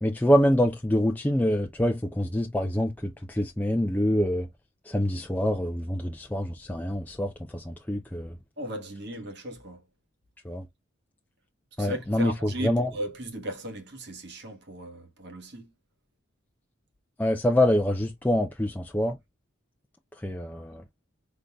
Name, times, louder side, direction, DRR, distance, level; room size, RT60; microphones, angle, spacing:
voice 1, 0.0-4.5 4.8-8.4 10.4-10.7 11.8-12.9 17.2-19.2 20.2-20.8, left 1 dB, 10° left, 0.3 m, -26 dB
voice 2, 8.6-9.8 11.8-15.7, right 1 dB, 50° right, 1.2 m, -37 dB
5.1 x 3.9 x 2.2 m
head